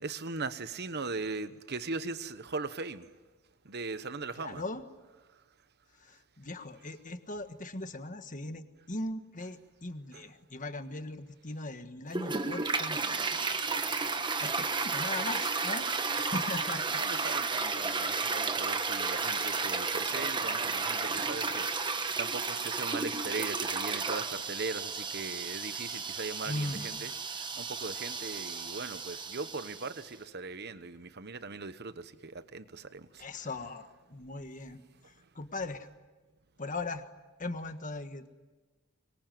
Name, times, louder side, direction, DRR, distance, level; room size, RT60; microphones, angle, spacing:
voice 1, 0.0-3.1 3.6-4.6 10.1-10.2 16.9-27.1 27.5-33.5, right 4 dB, 50° right, 1.1 m, -39 dB
voice 2, 4.4-4.8 6.0-13.5 14.4-17.2 26.4-27.0 33.2-34.8 35.1-35.9 36.6-37.0 37.4-38.3, left 2 dB, 35° left, 1.5 m, -39 dB
Toilet flush, 12.1-30.0, right 4 dB, 20° right, 1.2 m, -33 dB
25.0 x 23.5 x 9.3 m
head